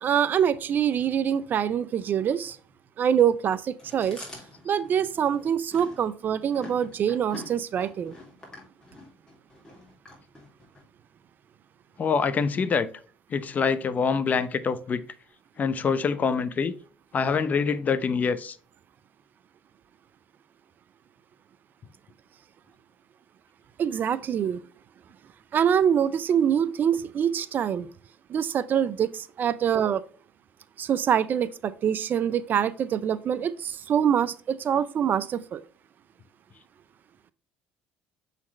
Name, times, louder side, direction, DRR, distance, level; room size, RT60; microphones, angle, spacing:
voice 1, 0.0-2.6 3.0-4.2 4.6-8.1 23.8-24.6 25.5-27.9 28.3-30.0 30.8-35.6, right 8 dB, 45° right, 0.5 m, -25 dB
Chewing mastication, 3.8-10.8, left 2 dB, 15° left, 3.2 m, -46 dB
voice 2, 12.0-12.9 13.3-15.0 15.6-16.7 17.1-18.5, left 5 dB, 40° left, 0.7 m, -25 dB
7.2 x 4.1 x 3.2 m
supercardioid pair, 80°, 4 cm